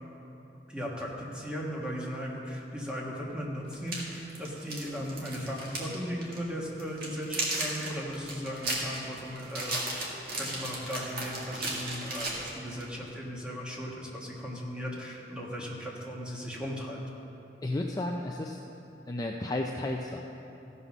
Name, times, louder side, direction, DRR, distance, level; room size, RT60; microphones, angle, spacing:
voice 1, 0.7-9.8 10.4-17.0, equal, 5° right, -4 dB, 1.4 m, -37 dB
sound 1, 2.9-3.0 3.7-5.9 6.2-6.4 6.8-12.9, right 2 dB, 55° right, 2.0 m, -35 dB
voice 2, 17.6-18.6 19.1-20.2, left 1 dB, 20° left, 1 dB, 0.4 m, -32 dB
15.0 x 5.6 x 6.0 m, 2.9 s
head